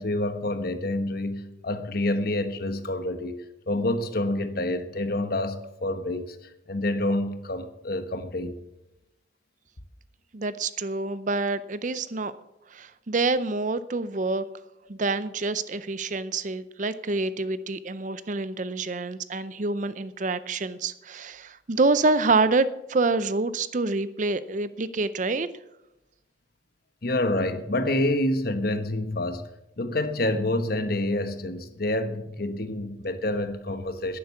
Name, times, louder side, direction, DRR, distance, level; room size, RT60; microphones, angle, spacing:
voice 1, 0.0-6.4 6.7-8.6 27.0-29.4 29.8-34.2, left 1 dB, 50° left, 9 dB, 1.2 m, -28 dB
voice 2, 10.3-12.3 12.7-14.4 14.9-25.5, right 3 dB, 40° right, 15 dB, 0.5 m, -27 dB
11.0 x 10.5 x 7.0 m, 0.92 s
head